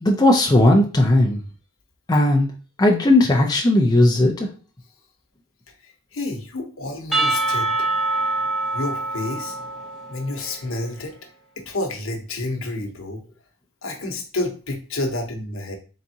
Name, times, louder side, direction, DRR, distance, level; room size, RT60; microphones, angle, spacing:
voice 1, 0.0-1.4 2.1-2.5 2.8-4.5, left 1 dB, 20° left, -1 dB, 0.5 m, -16 dB
voice 2, 5.8-7.9 8.7-9.6 10.1-11.1 11.6-13.3 13.8-15.8, left 2 dB, 70° left, 3 dB, 0.9 m, -29 dB
Percussion / Church bell, 7.1-10.8, right 2 dB, ahead, 0.9 m, -25 dB
4.0 x 3.5 x 2.7 m, 0.36 s
head